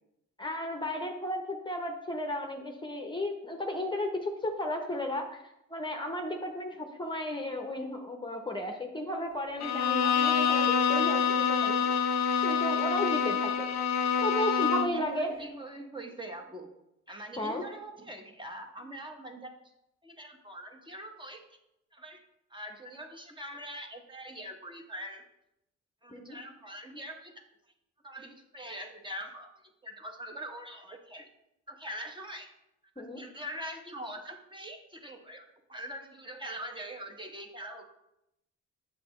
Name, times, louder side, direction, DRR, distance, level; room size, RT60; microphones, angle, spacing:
voice 1, 0.4-11.9 12.4-13.7 14.2-15.3 17.4-17.6 26.1-26.4 33.0-33.2, left 1 dB, 15° left, 3 dB, 0.8 m, -34 dB
Bowed string instrument, 9.6-15.1, left 6 dB, 60° left, 0.6 m, -26 dB
voice 2, 14.9-16.7 17.1-19.7 20.0-21.4 21.9-22.2 22.5-25.2 26.0-27.3 28.0-31.3 31.7-32.5 33.0-37.8, equal, 15° right, 3 dB, 1.0 m, -43 dB
7.7 x 6.1 x 3.2 m, 0.84 s
cardioid pair, 90°, 30 cm